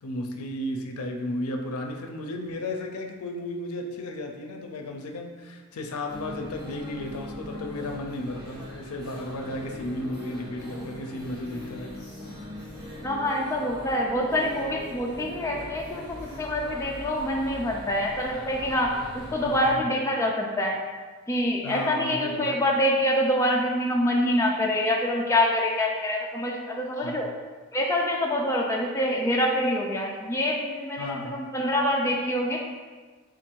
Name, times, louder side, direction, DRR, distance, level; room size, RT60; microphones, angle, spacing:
voice 1, 0.0-12.1 19.5-19.8 21.6-22.5 27.0-27.2 31.0-31.4, left 1 dB, 85° left, 4 dB, 0.5 m, -34 dB
sound 1, 6.1-19.7, left 1 dB, 15° right, 1.0 m, -41 dB
voice 2, 13.0-20.8 21.3-27.3 27.7-32.6, left 1 dB, 15° left, -2 dB, 0.3 m, -26 dB
3.7 x 2.5 x 4.4 m, 1.4 s
head